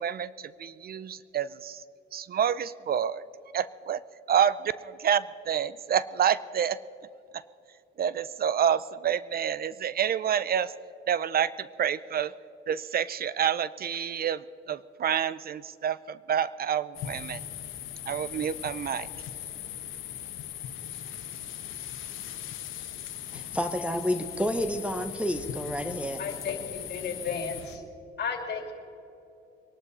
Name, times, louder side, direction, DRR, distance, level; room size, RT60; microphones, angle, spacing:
voice 1, 0.0-1.8 2.1-3.2 3.5-4.0 4.3-6.8 8.0-10.7 11.1-12.3 12.7-17.4 18.1-19.1, right 8 dB, 50° right, 17 dB, 0.5 m, -28 dB
sound 1, 16.9-27.8, left 10 dB, 85° left, 1.3 m, -39 dB
voice 2, 23.3-26.2, equal, 5° right, 8 dB, 1.1 m, -30 dB
voice 3, 26.2-27.8 28.2-28.7, left 5 dB, 55° left, 3 dB, 2.8 m, -33 dB
23.5 x 12.0 x 4.3 m, 2.7 s
cardioid pair, 90°, 20 cm